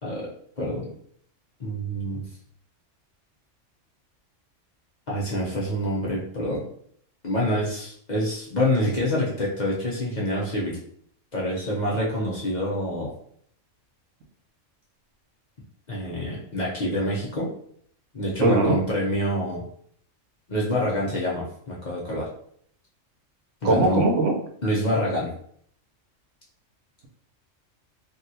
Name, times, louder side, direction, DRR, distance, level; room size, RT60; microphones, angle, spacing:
voice 1, 0.6-0.9 1.6-2.2 5.1-6.6 7.2-10.8 11.3-13.1 15.9-17.5 18.1-19.6 20.5-22.3 23.6-24.1 24.6-25.3, equal, 45° left, -4 dB, 0.7 m, -26 dB
voice 2, 18.4-18.8 23.6-24.3, right 2 dB, 75° right, 1 dB, 1.0 m, -20 dB
3.6 x 2.3 x 2.7 m, 0.64 s
omnidirectional pair, 1.3 m